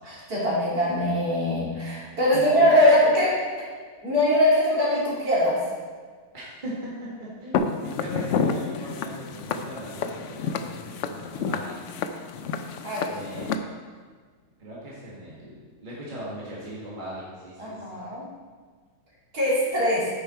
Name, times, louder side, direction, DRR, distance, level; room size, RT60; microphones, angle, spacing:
voice 1, 0.0-3.4 4.0-5.6 12.8-13.1 17.6-18.2 19.3-20.1, left 1 dB, 60° right, -8 dB, 3.6 m, -22 dB
voice 2, 2.2-2.7 6.3-6.7 7.4-11.9 13.1-13.6 14.6-18.0, equal, 30° right, -7 dB, 1.9 m, -39 dB
Walk footsteps, 7.5-13.6, left 5 dB, 70° left, 0.7 m, -30 dB
9.4 x 6.9 x 4.3 m, 1.6 s
omnidirectional pair, 1.8 m